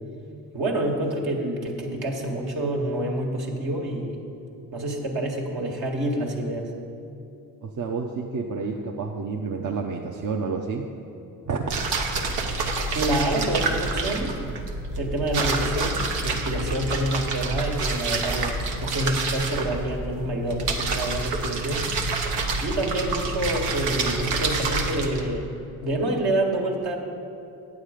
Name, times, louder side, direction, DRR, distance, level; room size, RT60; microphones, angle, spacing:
voice 1, 0.5-4.2 4.7-6.7 12.9-14.3 15.0-21.9 22.6-25.5 25.8-27.0, right 1 dB, 65° right, 0 dB, 1.6 m, -27 dB
voice 2, 7.6-10.8 11.5-11.7, right 4 dB, 50° right, 1 dB, 0.8 m, -29 dB
sound 1, 11.7-25.2, right 3 dB, 85° right, 0.9 m, -28 dB
9.1 x 7.1 x 5.0 m, 2.7 s
hypercardioid pair, 45°, 40 cm